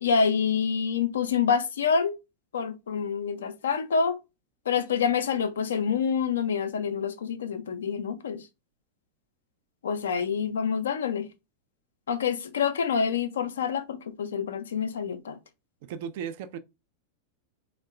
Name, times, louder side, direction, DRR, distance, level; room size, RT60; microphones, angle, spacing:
voice 1, 0.0-2.2 2.5-4.2 4.7-8.4 9.8-11.3 12.1-15.4, left 6 dB, 65° left, 0.4 m, -27 dB
voice 2, 15.9-16.6, right 8 dB, 50° right, 0.4 m, -35 dB
3.4 x 2.1 x 3.3 m
figure-of-eight pair, 90°, 0 cm